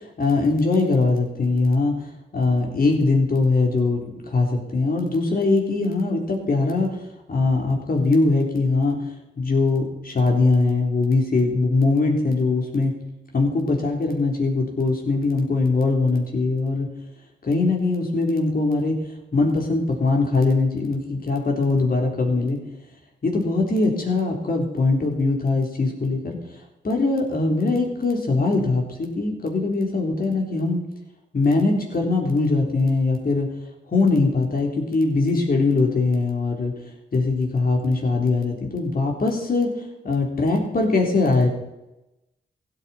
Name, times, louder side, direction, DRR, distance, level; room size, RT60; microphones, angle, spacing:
voice 1, 0.2-2.1 2.3-6.9 7.3-9.1 9.4-12.9 13.3-16.9 17.4-19.0 19.3-22.6 23.2-26.4 26.8-30.8 31.3-33.5 33.9-36.7 37.1-39.7 40.0-41.5, left 3 dB, 50° left, 1 dB, 3.7 m, -21 dB
15.5 x 9.2 x 4.4 m, 0.95 s
supercardioid pair, 40°, 19 cm